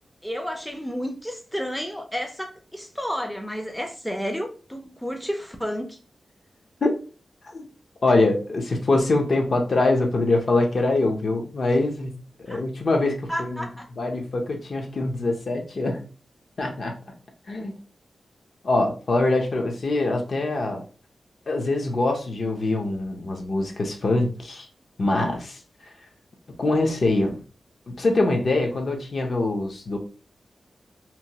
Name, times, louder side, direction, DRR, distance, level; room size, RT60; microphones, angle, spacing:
voice 1, 0.2-6.0 12.5-12.6 13.3-13.9, equal, 5° left, 0.4 m, -31 dB
voice 2, 8.0-13.7 14.0-16.0 16.6-17.0 17.5-17.7 18.6-20.8 21.5-24.7 25.0-25.6 26.6-27.4 27.9-30.0, left 2 dB, 55° left, 0.6 m, -24 dB
2.9 x 2.2 x 2.8 m
wide cardioid pair, 130°, 0 cm